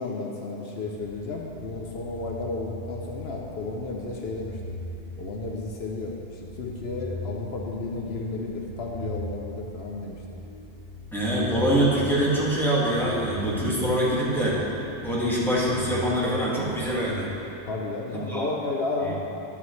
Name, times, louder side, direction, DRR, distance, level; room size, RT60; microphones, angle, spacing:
voice 1, 0.0-4.5 5.2-6.1 6.6-10.2 17.7-19.1, left 3 dB, 75° left, -1 dB, 1.0 m, -32 dB
sound 1, 0.8-17.6, equal, 70° right, 1.8 m, -40 dB
voice 2, 11.1-14.6 15.0-17.3 18.1-18.5 19.0-19.1, right 1 dB, ahead, -8 dB, 1.8 m, -24 dB
11.0 x 8.8 x 3.2 m, 2.9 s
omnidirectional pair, 1.1 m